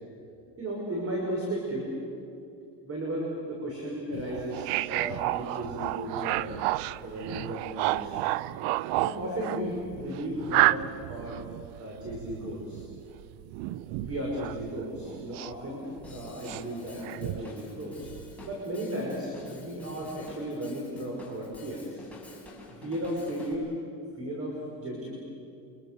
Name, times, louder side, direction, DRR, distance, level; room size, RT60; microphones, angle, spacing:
voice 1, 0.6-1.9 2.8-6.5 7.0-8.2 9.0-11.4 11.8-12.8 14.0-18.1 18.5-22.0 22.8-23.7 24.2-25.1, right 1 dB, 30° right, -2 dB, 6.0 m, -35 dB
sound 1, 4.1-15.7 16.0-17.5 18.0-18.5, right 17 dB, 90° right, 0.7 m, -31 dB
Drum kit / Drum, 16.0-23.5, left 2 dB, 5° left, 5.5 m, -48 dB
29.5 x 26.0 x 7.0 m, 2.5 s
cardioid pair, 130°, 45 cm